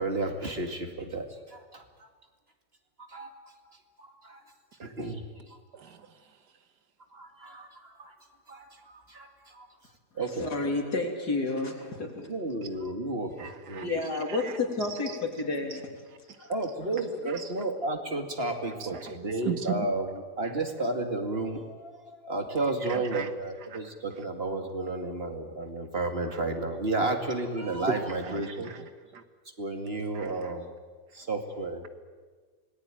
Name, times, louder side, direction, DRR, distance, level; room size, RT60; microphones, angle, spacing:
voice 1, 0.0-1.8 3.1-3.3 4.0-4.4 4.8-5.2 7.1-8.1 8.5-8.7 8.9-9.7 10.2-10.5 12.3-13.9 16.5-20.1 20.4-28.7 29.6-30.7 31.1-31.8, right 2 dB, 35° right, 5 dB, 2.4 m, -32 dB
voice 2, 5.7-6.1 13.4-13.9 14.3-14.6 14.9-15.2 15.7-15.8 16.4-16.5 17.3-17.5 18.7-19.9 22.9-23.3 23.7-23.8 24.2-24.3 26.3-26.4 27.9-28.0 28.2-29.2 30.1-30.5, right 8 dB, 75° right, 9 dB, 1.9 m, -38 dB
voice 3, 10.4-12.3 13.8-15.8 16.4-16.5 16.9-17.3, left 3 dB, 70° left, 2 dB, 3.8 m, -31 dB
26.0 x 19.0 x 9.2 m, 1.5 s
omnidirectional pair, 1.8 m